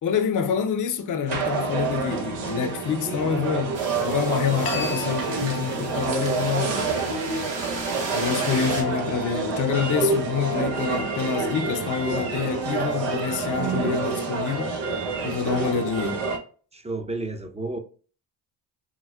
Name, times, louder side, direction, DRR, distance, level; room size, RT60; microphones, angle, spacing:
voice 1, 0.0-6.9 8.1-14.8 15.2-16.2, left 7 dB, 40° left, 0.6 m, -27 dB
sound 1, 1.3-16.4, right 4 dB, 85° right, 0.9 m, -28 dB
sound 2, 3.7-8.8, right 3 dB, 60° right, 1.4 m, -35 dB
sound 3, 4.7-13.7, left 6 dB, 80° left, 0.7 m, -42 dB
voice 2, 16.7-17.8, right 2 dB, 15° right, 0.5 m, -31 dB
4.6 x 2.0 x 2.3 m
supercardioid pair, 60°, 50 cm